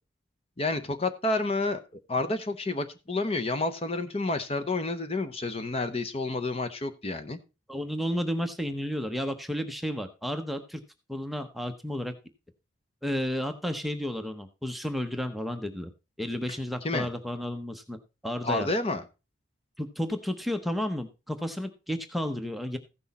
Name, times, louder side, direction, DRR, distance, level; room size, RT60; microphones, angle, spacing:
voice 1, 0.6-7.4 16.5-17.1 18.4-19.0, left 2 dB, 30° left, 9 dB, 0.8 m, -30 dB
voice 2, 7.7-10.8 11.1-12.1 13.0-15.9 16.2-18.0 18.2-18.7 19.8-22.8, equal, ahead, 6 dB, 0.7 m, -32 dB
15.0 x 6.2 x 4.1 m, 0.30 s
head